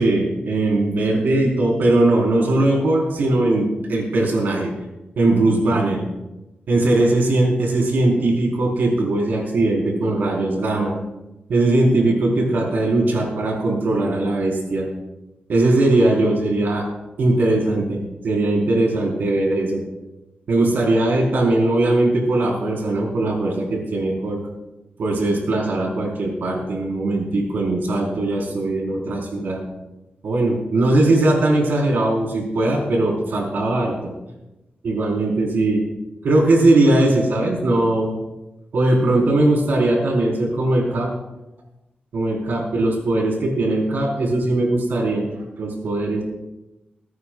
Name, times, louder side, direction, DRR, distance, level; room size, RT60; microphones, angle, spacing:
voice 1, 0.0-4.7 5.2-6.0 6.7-10.9 11.5-14.9 15.5-16.8 17.2-19.8 20.5-24.4 25.0-29.6 30.2-34.1 34.8-35.8 36.2-38.1 38.7-41.1 42.1-46.2, right 2 dB, 85° right, -1 dB, 4.0 m, -19 dB
21.5 x 17.5 x 2.3 m, 0.99 s
wide cardioid pair, 145°, 3 cm